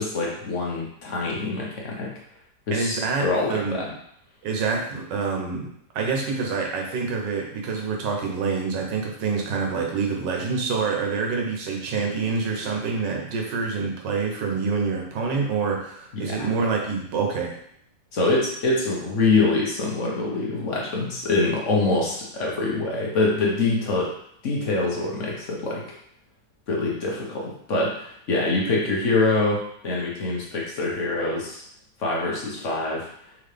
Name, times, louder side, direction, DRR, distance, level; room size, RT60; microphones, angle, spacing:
voice 1, 0.0-2.1 2.7-3.9 16.1-16.5 18.1-24.1 24.4-25.8 26.7-31.6 32.0-33.3, left 3 dB, 50° left, -2 dB, 1.1 m, -25 dB
voice 2, 2.7-3.7 4.4-5.7 5.9-17.6, right 4 dB, 80° right, 1 dB, 1.5 m, -26 dB
3.9 x 3.7 x 3.3 m, 0.67 s
omnidirectional pair, 1.9 m